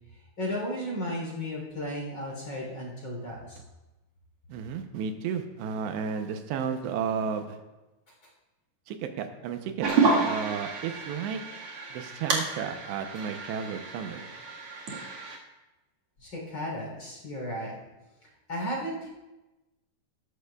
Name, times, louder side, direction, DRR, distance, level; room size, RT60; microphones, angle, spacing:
voice 1, 0.4-3.6 16.2-17.9 18.5-19.1, equal, 30° left, -2 dB, 3.6 m, -34 dB
voice 2, 4.5-7.6 8.9-11.4 11.9-14.3, right 7 dB, 85° right, 7 dB, 3.0 m, -33 dB
sound 1, 9.8-15.4, right 4 dB, 50° right, 2.0 m, -30 dB
18.5 x 13.0 x 2.3 m, 1.1 s
omnidirectional pair, 4.9 m